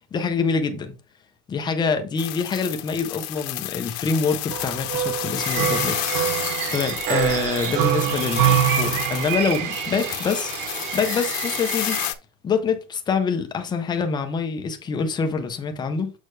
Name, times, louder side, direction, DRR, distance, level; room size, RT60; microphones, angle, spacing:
voice 1, 0.1-0.9 1.5-6.1 6.4-12.0 12.4-16.1, left 5 dB, 10° left, 0.4 m, -26 dB
sound 1, 2.2-12.1, left 17 dB, 65° left, 1.1 m, -31 dB
sound 2, 4.5-9.7, right 11 dB, 80° right, 1.1 m, -25 dB
sound 3, 5.4-12.1, right 8 dB, 40° right, 1.5 m, -31 dB
6.5 x 6.3 x 3.2 m
supercardioid pair, 155°, 49 cm